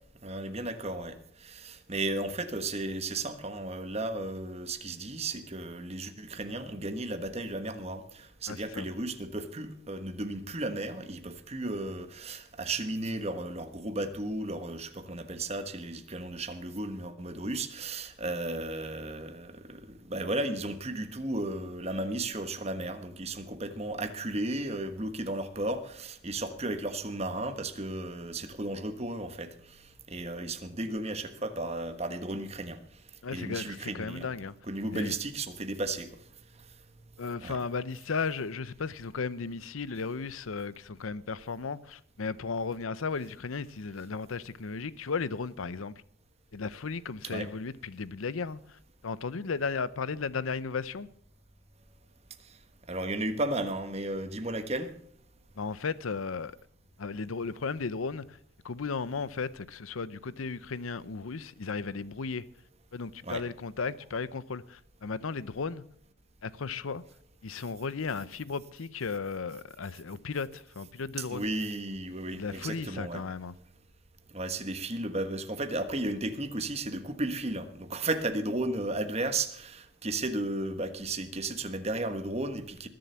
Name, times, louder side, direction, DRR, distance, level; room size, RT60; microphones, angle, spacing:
voice 1, 0.2-32.8 33.3-34.3 34.7-36.1 37.4-37.6 47.2-47.5 52.9-54.9 63.2-63.4 71.2-73.2 74.3-82.9, right 2 dB, 30° right, 1.3 m, -34 dB
voice 2, 8.5-8.8 33.2-34.5 34.9-35.1 37.2-45.9 46.5-48.6 49.0-51.1 55.6-56.5 57.0-58.4 58.6-62.4 62.9-65.9 66.4-67.0 67.4-71.5 72.3-73.5, left 4 dB, 80° left, 0.7 m, -35 dB
20.5 x 7.7 x 7.0 m
head